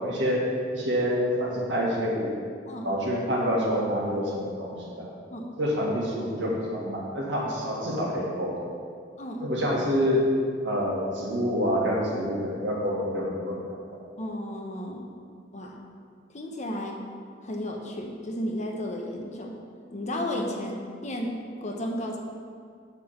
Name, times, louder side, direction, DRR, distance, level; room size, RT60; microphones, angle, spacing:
voice 1, 0.0-2.3 2.8-5.1 5.6-8.7 9.4-10.3 10.6-13.6, equal, 70° right, -3 dB, 1.7 m, -27 dB
voice 2, 9.2-9.5 14.2-15.1 15.5-15.8 16.3-17.0 17.4-19.5 19.9-22.2, left 1 dB, 40° left, 1 dB, 0.9 m, -33 dB
8.3 x 3.6 x 6.8 m, 2.1 s
head